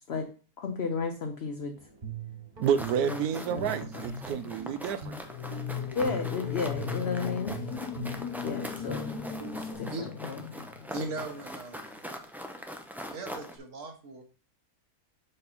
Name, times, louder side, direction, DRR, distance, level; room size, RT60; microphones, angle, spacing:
voice 1, 0.6-1.8 3.0-4.0 5.9-7.6 8.4-9.1 9.5-10.4, left 4 dB, 50° left, 0.9 m, -33 dB
Guitar, 1.8-9.7, right 4 dB, 35° right, 1.3 m, -42 dB
sound 1, 2.6-13.6, equal, 5° right, 0.3 m, -42 dB
voice 2, 2.6-5.2, right 8 dB, 80° right, 1.1 m, -29 dB
sound 2, 5.3-11.4, left 8 dB, 75° left, 1.2 m, -37 dB
voice 3, 10.9-12.1 13.1-14.2, right 2 dB, 60° right, 1.4 m, -38 dB
5.4 x 5.3 x 4.2 m
omnidirectional pair, 1.6 m